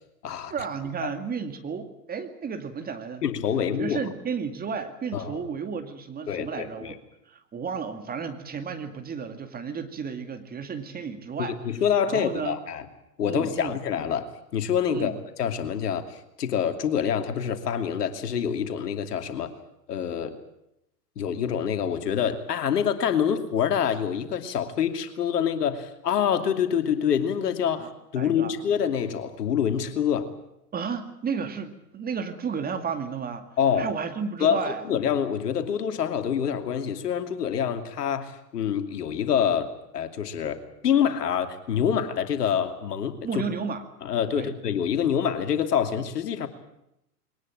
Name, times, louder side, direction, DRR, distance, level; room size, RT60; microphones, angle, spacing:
voice 1, 0.5-3.2 3.8-7.0 7.3-11.6 12.1-12.6 13.2-13.8 14.9-15.2 27.7-28.5 30.7-33.5 33.8-34.9 43.2-43.8 44.3-44.5, right 6 dB, 20° right, 8 dB, 2.3 m, -33 dB
voice 2, 3.2-4.0 5.1-5.4 6.3-6.9 11.4-12.8 13.2-16.0 16.4-19.5 19.9-20.4 21.2-30.3 33.6-33.9 34.4-43.2 44.0-46.5, left 8 dB, 75° left, 8 dB, 2.8 m, -26 dB
22.0 x 19.0 x 8.9 m, 0.81 s
hypercardioid pair, 115°, 48 cm